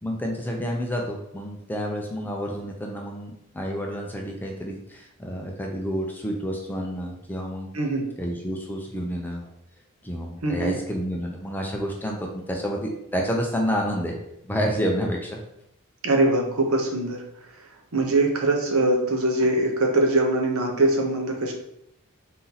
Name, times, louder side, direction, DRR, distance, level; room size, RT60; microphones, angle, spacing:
voice 1, 0.0-7.7 8.2-9.5 10.0-14.2 14.5-15.4, equal, 10° left, 0 dB, 0.5 m, -29 dB
voice 2, 7.7-8.1 10.4-10.7 16.0-17.2 17.6-21.5, right 2 dB, 70° right, 2 dB, 0.8 m, -22 dB
4.1 x 2.8 x 3.9 m, 0.76 s
head